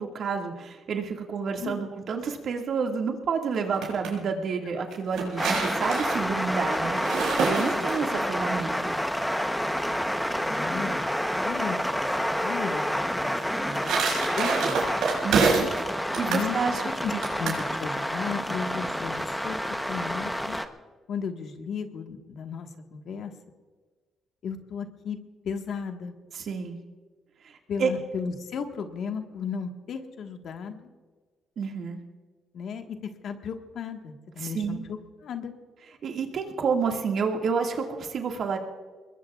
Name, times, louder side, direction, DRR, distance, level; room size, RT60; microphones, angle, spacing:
voice 1, 0.0-7.0 7.4-8.9 15.2-15.7 16.2-16.8 17.1-17.2 26.3-26.8 27.4-27.5 27.8-27.9 31.6-32.0 34.4-34.8 36.0-38.6, right 5 dB, 60° right, 2 dB, 2.0 m, -29 dB
sound 1, 3.5-4.1 4.9-8.2 13.4-15.8 16.1-16.5 17.2-17.6, right 5 dB, 80° right, 5.4 m, -27 dB
sound 2, 5.4-20.7, equal, 5° left, 0.9 m, -29 dB
voice 2, 10.4-12.1 12.4-14.0 14.2-15.0 16.3-16.6 16.8-19.6 19.9-20.6 21.1-23.3 24.4-25.2 25.4-26.1 27.7-30.9 32.5-35.5, left 6 dB, 65° left, 5 dB, 1.5 m, -35 dB
24.0 x 21.0 x 2.4 m, 1.4 s
cardioid pair, 90°, 0 cm